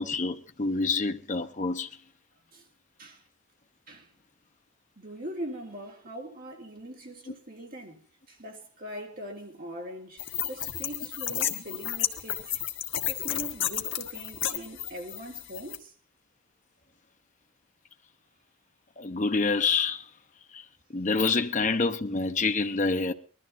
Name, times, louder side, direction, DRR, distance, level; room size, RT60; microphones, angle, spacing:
voice 1, 0.0-1.9 19.0-20.0 20.5-20.6 20.9-23.1, left 4 dB, 35° left, 0.8 m, -27 dB
voice 2, 5.0-8.0 8.3-10.2 10.5-12.5 13.1-15.9, equal, 40° right, 3.1 m, -41 dB
sound 1, 10.2-15.8, left 11 dB, 55° left, 1.4 m, -32 dB
20.5 x 13.0 x 4.1 m
head